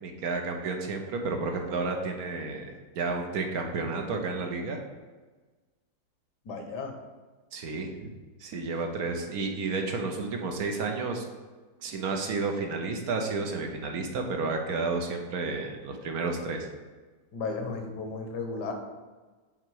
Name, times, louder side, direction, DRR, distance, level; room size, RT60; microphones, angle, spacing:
voice 1, 0.0-4.8 7.5-8.1 8.4-11.3 11.8-16.7, right 3 dB, 65° right, 3 dB, 1.1 m, -31 dB
voice 2, 6.4-7.0 17.3-18.7, left 4 dB, 75° left, 4 dB, 1.5 m, -34 dB
5.9 x 4.5 x 4.6 m, 1.3 s
omnidirectional pair, 1.8 m